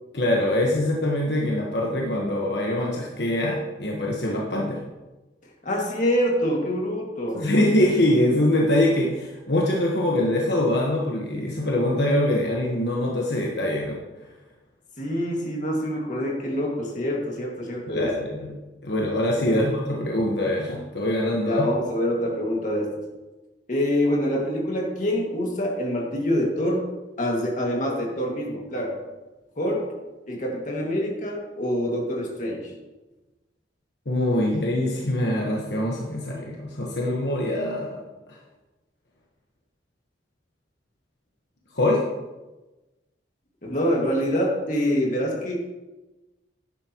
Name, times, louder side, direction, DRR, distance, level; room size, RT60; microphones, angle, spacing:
voice 1, 0.1-4.8 7.3-14.0 17.9-18.5 18.8-21.6 34.0-38.0 38.3-38.4 41.7-42.0, left 1 dB, 70° left, -2 dB, 1.3 m, -23 dB
voice 2, 5.6-7.5 15.0-18.1 19.5-19.8 21.5-23.0 23.7-26.9 27.2-29.0 29.6-29.9 30.3-32.7 43.6-45.5, equal, 45° left, -1 dB, 2.1 m, -26 dB
11.5 x 9.8 x 3.0 m, 1.1 s
head